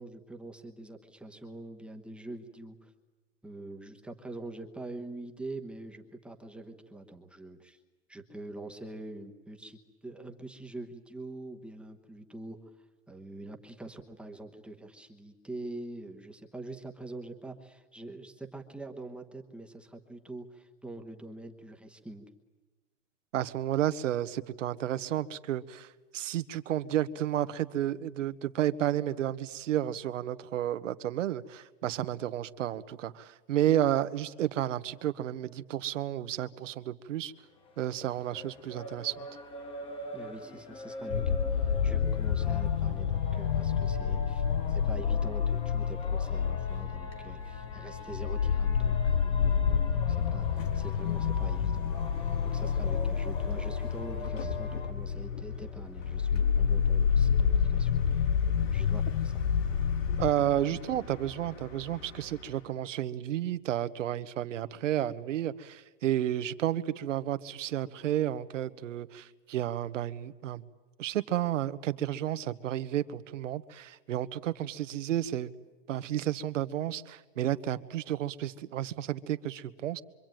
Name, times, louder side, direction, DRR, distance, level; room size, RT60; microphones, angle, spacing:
voice 1, 0.0-2.9 3.4-7.8 8.1-22.3 40.1-51.8 52.2-58.2 58.7-59.4, right 2 dB, 5° right, 3 dB, 1.1 m, -45 dB
voice 2, 23.3-37.3 37.8-39.3 60.2-70.7 71.0-75.5 75.9-80.0, right 12 dB, 75° right, 12 dB, 1.3 m, -31 dB
sound 1, 37.6-54.9, left 1 dB, 15° left, 1.3 m, -43 dB
sound 2, 41.1-60.3, left 7 dB, 65° left, 0.9 m, -28 dB
Bus, 50.3-62.8, left 2 dB, 80° left, 4.2 m, -47 dB
26.0 x 25.0 x 9.2 m, 1.2 s
supercardioid pair, 165°, 38 cm